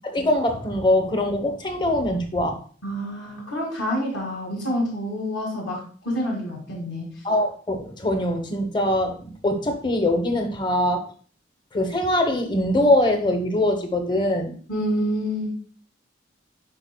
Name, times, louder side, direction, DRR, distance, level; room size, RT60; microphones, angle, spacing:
voice 1, 0.1-2.6 7.2-11.0 11.7-14.6, left 1 dB, 25° left, 5 dB, 0.8 m, -22 dB
voice 2, 2.8-7.1 14.7-15.6, equal, 65° left, -2 dB, 2.0 m, -27 dB
9.7 x 4.6 x 2.2 m, 0.43 s
head